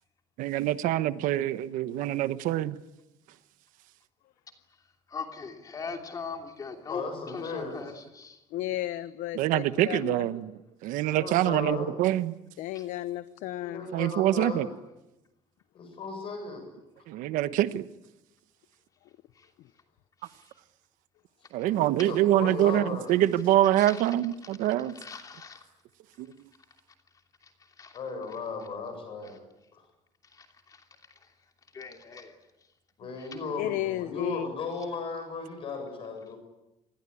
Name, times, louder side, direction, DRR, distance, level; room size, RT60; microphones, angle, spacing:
voice 1, 0.4-2.8 9.3-10.5 10.8-12.3 13.9-14.7 17.1-17.9 21.5-24.9 26.2-26.3, right 13 dB, 85° right, 1.2 m, -25 dB
voice 2, 4.7-8.4 9.7-10.0 12.7-12.8 19.3-19.5 20.2-20.6 23.8-24.1 24.9-25.6 27.4-28.0 29.2-29.3 30.2-31.3 31.7-32.4 33.2-33.3, left 5 dB, 25° left, 2.9 m, -42 dB
voice 3, 6.9-7.8 11.1-11.9 13.6-14.7 15.7-16.7 21.7-23.1 27.9-29.4 29.7-29.8 33.0-36.4, left 4 dB, 45° left, 7.7 m, -36 dB
voice 4, 8.5-10.3 12.6-13.9 19.6-19.7 33.6-34.5, left 14 dB, 85° left, 0.9 m, -33 dB
27.5 x 21.5 x 8.6 m
cardioid pair, 165°, 13 cm